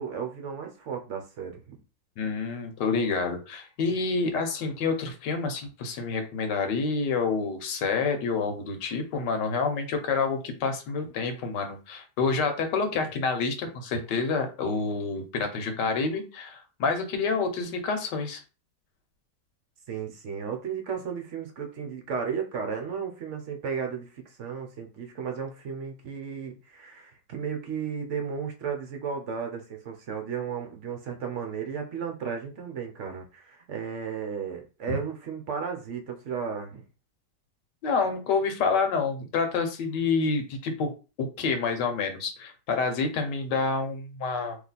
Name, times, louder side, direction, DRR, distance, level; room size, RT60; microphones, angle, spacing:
voice 1, 0.0-1.8 19.9-36.8, right 6 dB, 55° right, 3 dB, 0.8 m, -34 dB
voice 2, 2.2-18.4 34.9-35.0 37.8-40.9 41.2-44.6, left 4 dB, 80° left, 6 dB, 1.5 m, -28 dB
3.2 x 3.0 x 4.0 m, 0.33 s
omnidirectional pair, 1.9 m